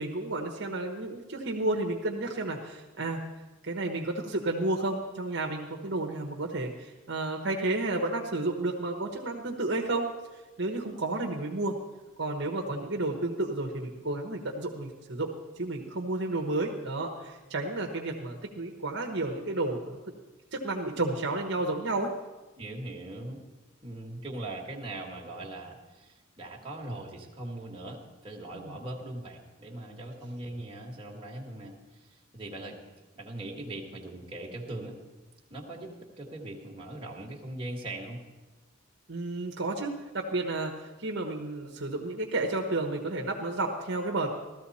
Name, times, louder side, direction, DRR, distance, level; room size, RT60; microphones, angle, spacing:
voice 1, 0.0-3.2 3.6-10.1 10.6-11.8 12.2-19.9 20.5-22.1 28.5-28.8 39.1-44.4, right 2 dB, 55° right, 1 dB, 1.2 m, -31 dB
voice 2, 22.6-23.4 23.8-32.8 33.2-34.9 35.5-35.9 36.2-38.2, right 1 dB, 25° right, -2 dB, 1.8 m, -40 dB
15.5 x 13.5 x 4.2 m, 1.2 s
head